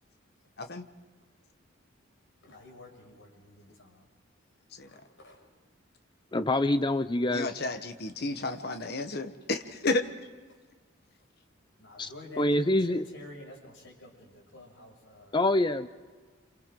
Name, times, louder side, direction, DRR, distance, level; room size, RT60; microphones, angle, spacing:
voice 1, 2.4-4.0 4.9-5.4 11.8-15.4, left 1 dB, 70° left, -1 dB, 6.6 m, -49 dB
voice 2, 6.3-7.5 12.0-12.1 12.4-13.0 15.3-15.9, left 1 dB, 20° left, 11 dB, 0.6 m, -25 dB
voice 3, 7.3-10.0, left 2 dB, 50° left, 7 dB, 1.2 m, -32 dB
29.0 x 27.5 x 3.8 m, 1.4 s
head